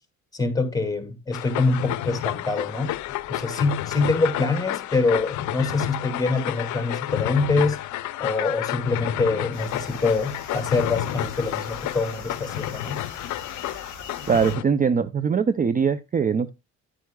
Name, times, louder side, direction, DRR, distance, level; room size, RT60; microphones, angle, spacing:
voice 1, 0.3-2.9 3.3-7.8 8.2-13.0, left 3 dB, 10° left, 2.3 m, -25 dB
sound 1, 1.3-14.6, left 14 dB, 75° left, 0.6 m, -31 dB
sound 2, 9.5-14.5, right 2 dB, 80° right, 4.8 m, -45 dB
voice 2, 14.3-16.5, right 6 dB, 30° right, 0.5 m, -22 dB
10.0 x 9.3 x 2.3 m
cardioid pair, 90°, 30 cm